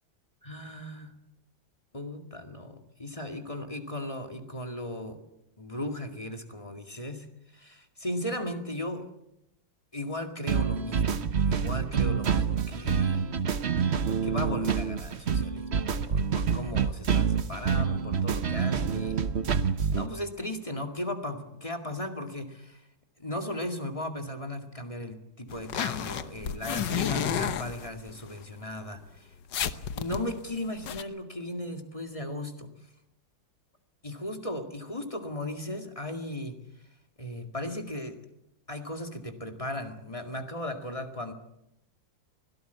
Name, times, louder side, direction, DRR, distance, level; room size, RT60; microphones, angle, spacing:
voice 1, 0.4-1.1 1.9-5.2 5.6-7.3 7.5-9.1 9.9-13.3 14.2-15.7 16.0-19.2 19.9-22.9 23.2-29.3 29.9-32.7 34.0-36.6 37.2-38.2 38.7-41.3, left 1 dB, 15° left, 5 dB, 2.1 m, -36 dB
sound 1, 10.5-20.0, right 6 dB, 45° right, 1.0 m, -27 dB
sound 2, 25.5-28.3 28.8-28.9 29.2-29.3 29.5-31.0, left 9 dB, 65° left, 1.6 m, -31 dB
24.5 x 17.5 x 8.2 m, 0.85 s
omnidirectional pair, 2.1 m